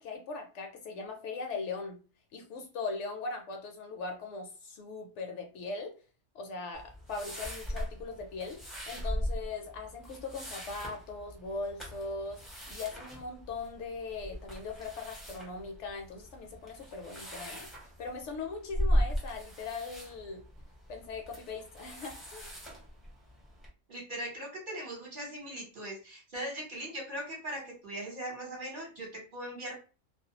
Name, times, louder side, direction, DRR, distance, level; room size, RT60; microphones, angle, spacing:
voice 1, 0.0-2.0 2.3-5.9 6.3-8.6 8.9-12.4 12.7-17.7 18.0-20.4 20.9-22.6, left 4 dB, 70° left, 3 dB, 0.8 m, -40 dB
sound 1, 6.7-23.7, equal, ahead, 0.5 m, -38 dB
voice 2, 23.9-29.1 29.3-29.8, right 1 dB, 45° right, -3 dB, 0.9 m, -40 dB
2.4 x 2.2 x 2.7 m, 0.35 s
omnidirectional pair, 1.3 m